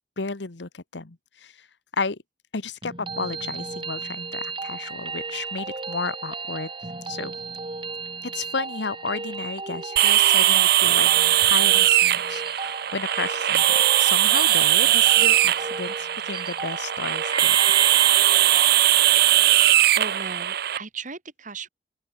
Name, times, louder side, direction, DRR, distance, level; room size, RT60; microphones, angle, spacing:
voice 1, 0.2-1.7 1.9-2.2 2.5-6.7 7.1-7.3 8.2-17.6, left 4 dB, 80° left, 1.3 m, -33 dB
sound 1, 2.8-18.8, right 3 dB, 30° right, 7.0 m, -35 dB
sound 2, 10.0-20.8, right 13 dB, 60° right, 0.8 m, -19 dB
voice 2, 19.9-21.7, right 4 dB, 45° right, 3.3 m, -36 dB
open air
head